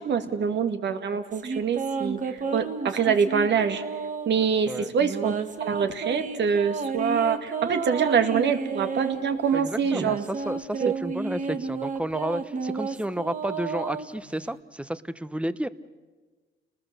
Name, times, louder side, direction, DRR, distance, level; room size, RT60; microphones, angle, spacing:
voice 1, 0.0-3.8 4.3-5.4 5.6-10.2 10.8-10.9, right 6 dB, 60° right, 7 dB, 1.9 m, -25 dB
sound 1, 1.3-4.4 5.0-9.2 9.8-14.5, right 5 dB, 40° right, 1.7 m, -32 dB
voice 2, 9.5-15.7, right 1 dB, 5° right, 14 dB, 0.9 m, -31 dB
29.5 x 20.0 x 6.7 m, 1.3 s
cardioid pair, 90°, 20 cm